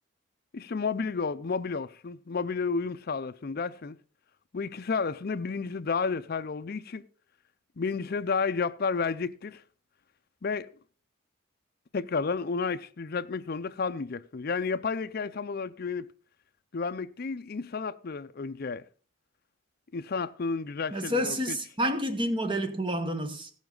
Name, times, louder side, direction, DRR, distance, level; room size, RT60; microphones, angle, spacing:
voice 1, 0.5-4.0 4.5-7.1 7.8-9.6 10.4-10.7 11.9-16.1 16.7-18.8 19.9-21.6, left 4 dB, 45° left, 0.5 m, -31 dB
voice 2, 20.9-23.5, equal, 25° right, 1.1 m, -29 dB
16.0 x 7.2 x 3.9 m
head